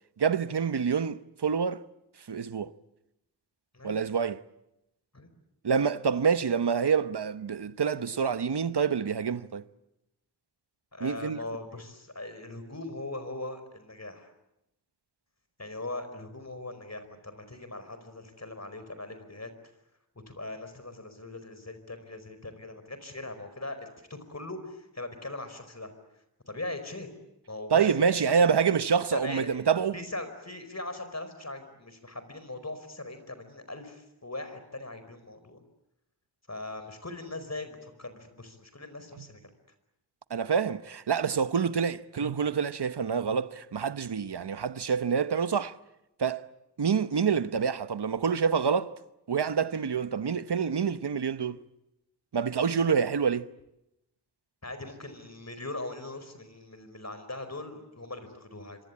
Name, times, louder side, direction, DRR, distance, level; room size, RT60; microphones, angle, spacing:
voice 1, 0.2-1.8 2.3-2.7 3.8-4.4 5.6-9.6 11.0-11.4 27.7-29.9 39.2-39.3 40.3-45.7 46.2-46.5 46.8-49.0 49.3-51.6 52.3-53.5, right 6 dB, 80° right, 1.0 m, -27 dB
voice 2, 10.9-14.3 15.6-19.5 20.3-27.2 27.5-28.2 29.1-29.5 29.9-35.6 36.5-39.4 54.6-58.8, left 2 dB, 40° left, 4.9 m, -40 dB
26.0 x 25.0 x 8.5 m
wide cardioid pair, 60°, 40 cm